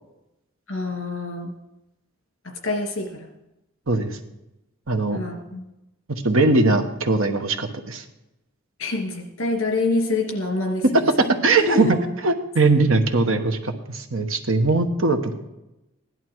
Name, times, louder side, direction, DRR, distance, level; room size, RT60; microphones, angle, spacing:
voice 1, 0.7-1.5 2.4-3.3 5.1-5.6 8.8-10.8 11.6-12.0, left 2 dB, 60° left, 2 dB, 2.7 m, -26 dB
voice 2, 3.9-4.2 4.9-5.2 6.2-8.0 11.0-12.0 12.2-15.3, right 3 dB, 70° right, 6 dB, 1.2 m, -20 dB
16.5 x 11.0 x 4.7 m, 0.94 s
head